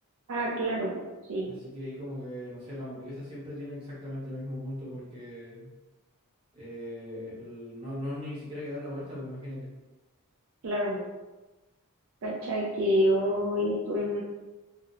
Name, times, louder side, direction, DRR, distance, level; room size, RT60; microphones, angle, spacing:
voice 1, 0.3-1.0 1.3-1.5 10.6-11.1 12.2-14.2, equal, 65° right, -4 dB, 0.4 m, -27 dB
voice 2, 1.5-5.7 6.5-9.7, left 1 dB, 25° right, -8 dB, 1.0 m, -39 dB
2.4 x 2.0 x 2.9 m, 1.1 s
head